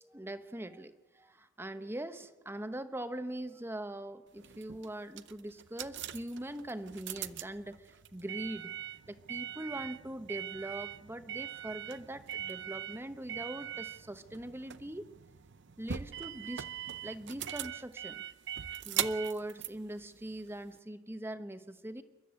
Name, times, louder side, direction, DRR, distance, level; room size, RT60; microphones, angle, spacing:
voice 1, 0.0-8.7 9.1-15.1 15.8-16.6 17.0-18.2 18.8-22.0, right 1 dB, 10° right, 10 dB, 1.0 m, -41 dB
sound 1, 4.3-20.8, right 10 dB, 60° right, 0.6 m, -41 dB
28.5 x 12.5 x 8.3 m, 1.1 s
head